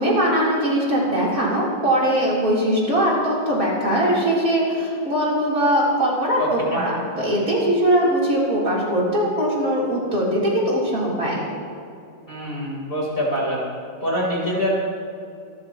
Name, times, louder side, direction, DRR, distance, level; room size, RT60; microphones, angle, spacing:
voice 1, 0.0-11.4, equal, 50° right, -6 dB, 4.0 m, -21 dB
voice 2, 6.4-6.8 12.3-13.6 14.0-14.7, equal, 30° left, -5 dB, 4.0 m, -25 dB
26.5 x 14.0 x 3.0 m, 2.5 s
omnidirectional pair, 2.0 m